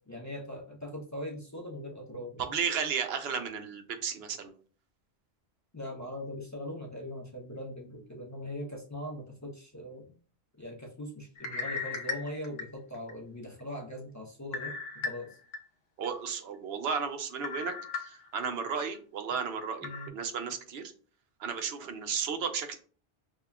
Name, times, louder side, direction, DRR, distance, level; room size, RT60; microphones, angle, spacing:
voice 1, 0.0-2.5 5.7-10.2 10.6-14.8 15.0-15.4 19.8-20.1, left 1 dB, 25° left, -2 dB, 0.4 m, -41 dB
voice 2, 2.4-4.5 16.0-20.8 21.4-22.8, right 6 dB, 80° right, 7 dB, 0.8 m, -34 dB
sound 1, 11.4-13.1 13.6-13.7 14.5-15.6 16.0-16.1 17.4-18.5 18.9-19.0 19.8-20.1, left 4 dB, 85° left, 0.9 m, -37 dB
5.3 x 2.2 x 2.2 m, 0.41 s
omnidirectional pair, 1.1 m